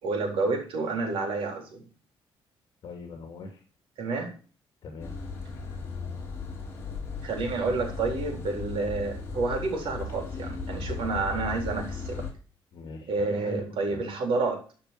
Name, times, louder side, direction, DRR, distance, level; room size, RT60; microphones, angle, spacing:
voice 1, 0.0-1.9 4.0-4.3 7.2-12.2 13.1-14.6, right 3 dB, 70° right, 3 dB, 4.0 m, -29 dB
voice 2, 2.8-3.6 4.8-5.1 12.7-13.6 13.9-14.0, left 4 dB, 55° left, 2 dB, 2.6 m, -42 dB
sound 1, 5.0-12.3, left 4 dB, 30° left, 3.4 m, -36 dB
12.5 x 5.6 x 7.6 m, 0.39 s
cardioid pair, 165°, 9 cm